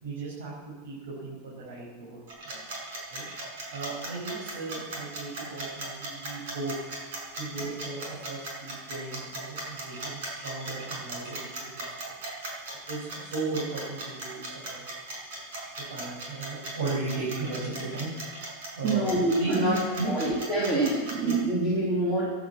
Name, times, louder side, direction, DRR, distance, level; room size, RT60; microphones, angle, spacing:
voice 1, 0.0-2.2 2.4-2.6 3.1-3.2 3.7-6.7 7.4-11.9 12.9-14.8 15.9-18.1 18.8-19.0 19.4-20.2, right 3 dB, 75° right, -5 dB, 5.6 m, -36 dB
sound 1, 2.3-21.4, right 2 dB, 55° right, 5.3 m, -37 dB
voice 2, 18.8-19.8 20.1-22.3, right 2 dB, 20° right, -6 dB, 2.9 m, -26 dB
15.0 x 10.5 x 8.3 m, 1.3 s
supercardioid pair, 180°, 0 cm